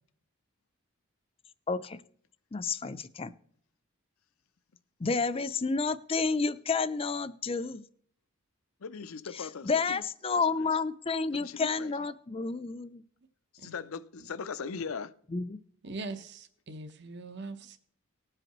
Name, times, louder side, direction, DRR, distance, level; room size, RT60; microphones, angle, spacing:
voice 1, 1.7-2.0 2.5-3.3 5.0-7.8 9.6-13.0 15.3-15.6, left 4 dB, 25° left, 0.5 m, -30 dB
voice 2, 8.8-10.0 10.3-10.7 11.3-11.9 13.5-15.1, left 5 dB, 75° left, 0.6 m, -40 dB
voice 3, 15.8-17.8, right 3 dB, 55° right, 0.9 m, -42 dB
19.0 x 7.8 x 3.0 m
head